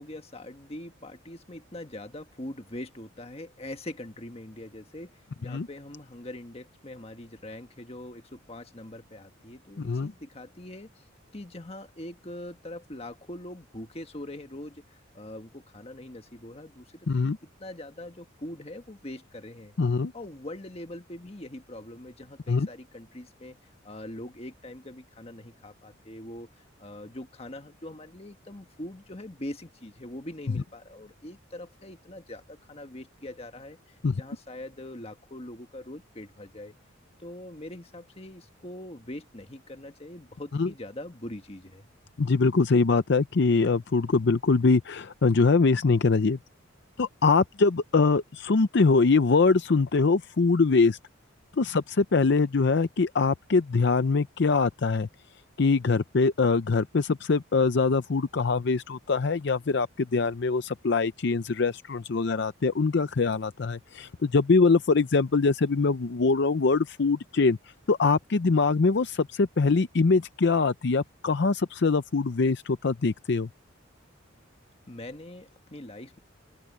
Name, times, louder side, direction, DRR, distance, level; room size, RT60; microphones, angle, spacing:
voice 1, 0.0-11.0 11.3-17.3 17.6-19.8 20.1-23.6 23.8-36.7 37.2-41.9 74.9-76.2, left 1 dB, 30° left, 1.5 m, -42 dB
voice 2, 9.8-10.1 17.1-17.4 19.8-20.1 22.5-22.7 34.0-34.1 40.5-40.7 42.2-46.4 47.0-51.0 51.6-55.1 55.6-67.6 67.9-73.5, left 4 dB, 55° left, 0.6 m, -23 dB
open air
head